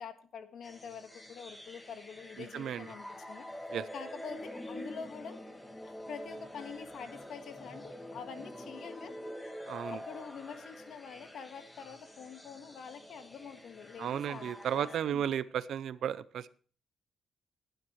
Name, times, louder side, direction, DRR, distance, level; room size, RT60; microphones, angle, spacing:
voice 1, 0.0-5.4 5.8-9.2 9.9-15.3, left 6 dB, 65° left, 8 dB, 1.6 m, -46 dB
sound 1, 0.6-15.0, left 1 dB, 10° left, 1.8 m, -46 dB
voice 2, 2.5-2.9 3.7-3.9 9.7-10.0 14.0-16.5, right 9 dB, 70° right, 17 dB, 0.6 m, -34 dB
18.5 x 10.5 x 3.2 m, 0.42 s
cardioid pair, 115°, 0 cm